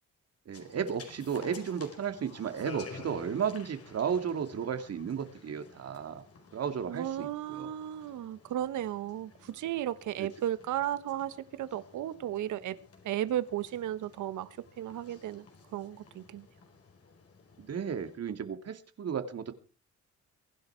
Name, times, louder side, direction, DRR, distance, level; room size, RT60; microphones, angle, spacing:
sound 1, 0.5-18.2, left 4 dB, 50° left, 4.9 m, -52 dB
voice 1, 0.5-6.2 6.5-7.7 10.2-10.3 17.6-19.5, right 7 dB, 55° right, 2.6 m, -34 dB
voice 2, 6.9-12.8 13.0-15.4 15.7-16.5, right 12 dB, 75° right, 1.3 m, -35 dB
23.5 x 10.5 x 4.6 m
cardioid pair, 90°, 30 cm